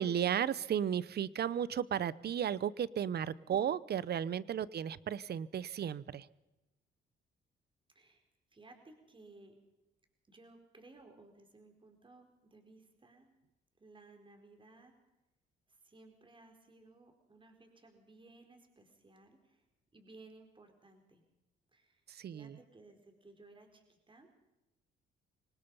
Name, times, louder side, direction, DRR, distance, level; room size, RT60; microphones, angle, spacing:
voice 1, 0.0-6.3 22.2-22.6, right 9 dB, 55° right, 19 dB, 0.8 m, -34 dB
voice 2, 8.5-9.5 10.3-13.3 13.8-14.9 15.7-19.6 19.9-21.2 21.7-24.3, right 2 dB, 25° right, 5 dB, 4.4 m, -59 dB
25.0 x 19.5 x 5.5 m, 0.97 s
cardioid pair, 90°, 20 cm